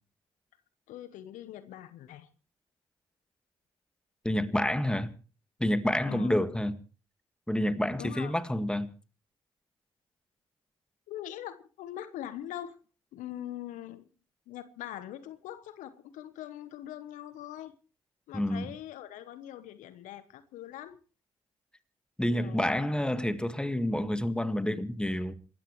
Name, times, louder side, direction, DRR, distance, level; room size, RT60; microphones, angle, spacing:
voice 1, 0.9-2.3 6.0-6.3 7.9-8.3 11.1-12.8 13.1-14.0 14.5-17.7 18.3-21.0 22.3-22.8, left 12 dB, 75° left, 1.1 m, -42 dB
voice 2, 4.2-5.1 5.6-6.7 7.5-8.9 18.3-18.7 22.2-25.3, left 1 dB, 5° left, 1.8 m, -28 dB
27.5 x 13.5 x 3.2 m
hypercardioid pair, 45°, 13 cm